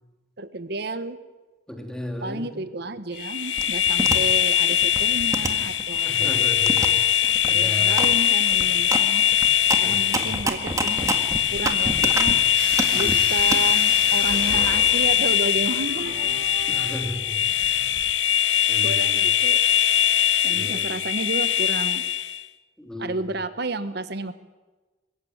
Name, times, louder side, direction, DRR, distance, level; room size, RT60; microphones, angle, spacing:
voice 1, 0.4-1.2 2.2-6.4 7.4-9.2 9.8-11.1 11.5-12.4 12.9-16.1 18.8-19.6 20.4-22.0 23.0-24.3, right 2 dB, 65° right, 12 dB, 1.3 m, -31 dB
voice 2, 1.7-2.5 6.0-6.9 7.5-8.1 9.8-10.3 12.9-13.2 16.7-17.8 18.7-19.3 20.5-21.0 22.8-23.2, left 1 dB, 5° left, 2 dB, 3.1 m, -35 dB
sound 1, 3.2-22.4, left 10 dB, 85° left, 0.9 m, -21 dB
sound 2, 3.6-4.2 4.7-6.2 6.7-6.9 7.2-7.5 8.0-8.1 8.4-12.3 12.7-13.6, right 2 dB, 20° right, 1.8 m, -27 dB
sound 3, 12.5-18.1, right 3 dB, 80° right, 5.5 m, -36 dB
22.5 x 15.5 x 9.5 m, 1.2 s
head